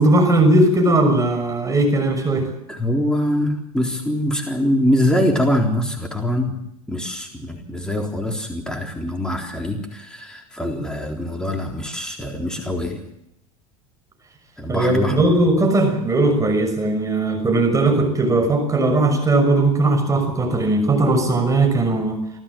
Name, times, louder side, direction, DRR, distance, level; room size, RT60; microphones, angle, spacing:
voice 1, 0.0-2.5 14.7-22.2, right 2 dB, 15° right, 4 dB, 6.3 m, -18 dB
voice 2, 2.7-6.6 6.9-13.0 14.6-15.3, left 1 dB, 5° left, 1 dB, 3.9 m, -23 dB
26.0 x 14.0 x 7.6 m, 0.80 s
hypercardioid pair, 85°, 19 cm